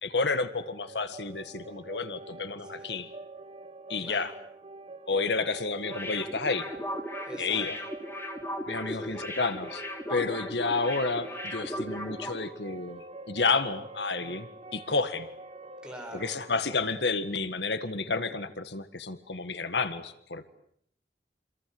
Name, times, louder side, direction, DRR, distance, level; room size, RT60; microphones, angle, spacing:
voice 1, 0.0-3.1 3.9-4.3 5.1-6.7 7.4-7.8 8.7-9.8 10.1-15.3 16.2-20.5, left 4 dB, 80° left, 11 dB, 1.8 m, -30 dB
sound 1, 0.6-18.4, right 2 dB, 35° right, 1.6 m, -46 dB
voice 2, 2.6-3.0 4.0-4.4 7.2-7.9 8.9-9.2 15.8-16.8, equal, 5° right, 2 dB, 7.2 m, -46 dB
sound 2, 5.8-12.5 12.8-12.9, equal, 15° left, 3.7 m, -37 dB
28.0 x 27.0 x 7.8 m, 0.67 s
head